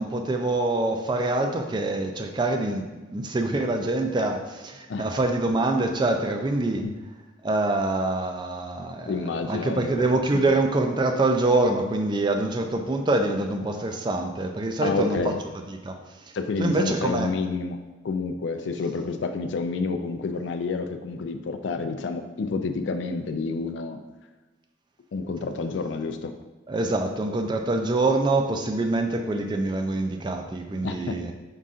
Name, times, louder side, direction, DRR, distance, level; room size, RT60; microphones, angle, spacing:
voice 1, 0.0-6.8 7.4-9.2 9.4-15.3 15.8-16.0 16.6-17.3 26.7-31.3, right 2 dB, 25° right, 4 dB, 0.3 m, -25 dB
voice 2, 9.1-10.1 10.3-10.4 14.8-15.4 16.3-17.8 18.0-24.0 25.1-26.3 30.8-31.2, left 4 dB, 70° left, 7 dB, 0.4 m, -29 dB
5.5 x 2.5 x 3.6 m, 1.2 s
head